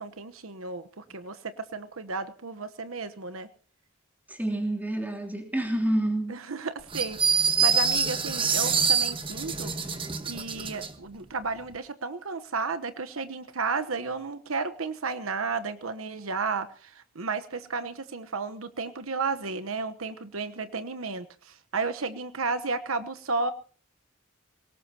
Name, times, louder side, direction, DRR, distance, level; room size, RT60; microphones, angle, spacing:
voice 1, 0.0-3.5 6.3-9.7 10.2-23.5, right 4 dB, 90° right, 10 dB, 1.1 m, -33 dB
voice 2, 4.3-6.4, right 1 dB, 10° right, 3 dB, 3.1 m, -28 dB
sound 1, 6.9-10.9, right 6 dB, 25° right, 1.4 m, -25 dB
22.5 x 18.5 x 2.9 m, 0.41 s
head